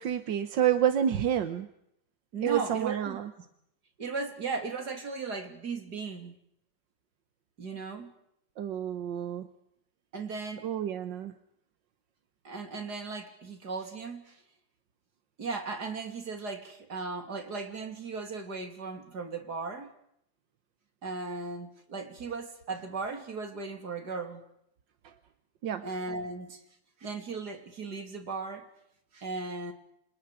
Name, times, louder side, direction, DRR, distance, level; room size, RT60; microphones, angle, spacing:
voice 1, 0.0-1.7 2.4-3.3 8.6-9.5 10.6-11.3 25.0-25.1 25.6-25.9, right 10 dB, 85° right, 9 dB, 1.8 m, -29 dB
voice 2, 2.3-3.2 4.0-6.4 7.6-8.1 10.1-10.7 12.4-14.4 15.4-19.9 21.0-24.4 25.8-26.6 27.0-28.7 29.1-29.7, right 4 dB, 65° right, 5 dB, 3.6 m, -37 dB
30.0 x 27.0 x 5.1 m, 0.75 s
omnidirectional pair, 1.9 m